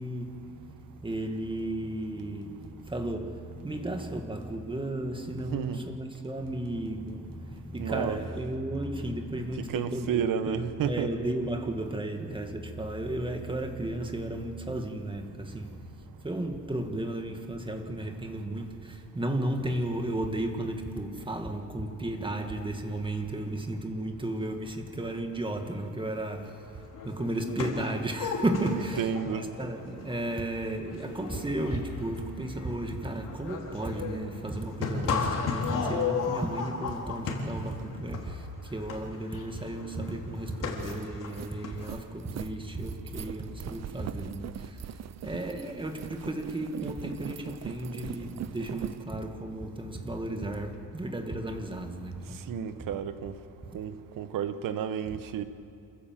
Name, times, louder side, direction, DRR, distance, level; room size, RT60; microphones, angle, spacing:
voice 1, 0.0-52.5, right 1 dB, 15° right, 2.0 m, -34 dB
voice 2, 7.8-8.2 9.7-11.1 29.0-29.5 52.3-53.4 53.7-55.4, right 8 dB, 80° right, 1.3 m, -31 dB
sound 1, 26.6-26.7 26.8-41.9, left 5 dB, 75° left, 3.2 m, -35 dB
sound 2, 40.2-40.3 40.6-49.0, right 11 dB, 55° right, 0.6 m, -41 dB
27.5 x 15.5 x 7.6 m
cardioid pair, 125°, 32 cm